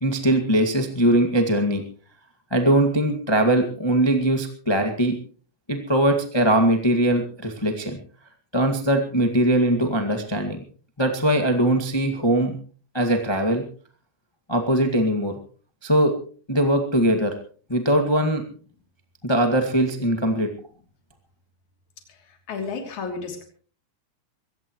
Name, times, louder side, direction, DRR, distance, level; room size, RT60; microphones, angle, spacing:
voice 1, 0.0-1.8 2.5-5.1 5.7-8.0 8.5-10.6 11.0-12.5 12.9-13.6 14.5-15.3 15.8-16.1 16.5-17.3 17.7-18.4 19.2-20.5, right 1 dB, 15° left, 4 dB, 0.8 m, -21 dB
voice 2, 22.1-23.4, left 4 dB, 55° left, 3 dB, 4.4 m, -33 dB
23.0 x 18.0 x 3.1 m, 0.41 s
omnidirectional pair, 4.3 m